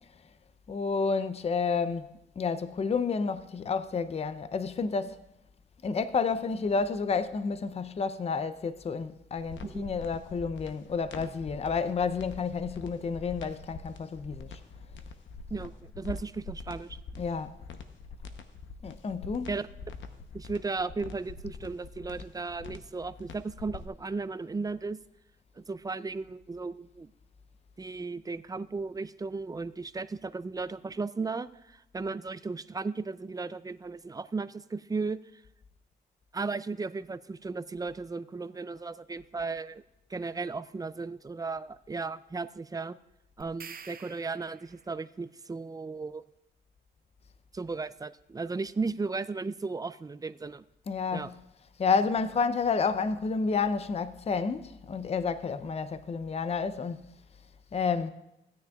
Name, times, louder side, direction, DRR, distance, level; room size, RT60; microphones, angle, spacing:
voice 1, 0.7-2.1 2.4-5.2 5.8-14.5 17.2-17.5 18.8-19.6 50.9-51.3 51.8-57.0 57.7-58.1, left 5 dB, 35° left, 0.5 m, -30 dB
sound 1, 9.4-23.9, left 4 dB, 80° left, 0.8 m, -44 dB
voice 2, 15.5-17.0 19.5-19.7 20.3-25.0 25.6-27.1 27.8-35.4 36.3-39.8 40.1-43.0 43.4-46.2 47.5-50.6 51.1-51.3, right 4 dB, 20° right, 0.4 m, -35 dB
sound 2, 43.4-45.0, right 6 dB, 50° right, 0.7 m, -48 dB
16.0 x 9.5 x 2.3 m
cardioid pair, 90°, 19 cm